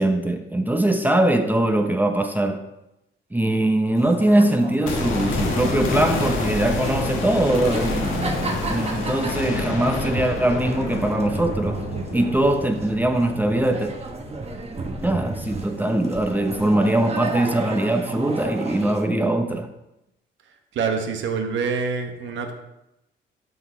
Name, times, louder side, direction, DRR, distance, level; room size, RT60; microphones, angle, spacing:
voice 1, 0.0-2.6 3.3-11.8 12.1-13.9 15.0-19.7, right 1 dB, 10° right, 0.7 m, -22 dB
sound 1, 4.0-19.0, right 3 dB, 30° right, 1.1 m, -34 dB
sound 2, 4.8-14.9 15.1-15.2, left 2 dB, 90° left, 1.4 m, -28 dB
voice 2, 20.7-22.5, right 5 dB, 75° right, 1.1 m, -26 dB
12.0 x 4.0 x 3.4 m
cardioid pair, 90°, 20 cm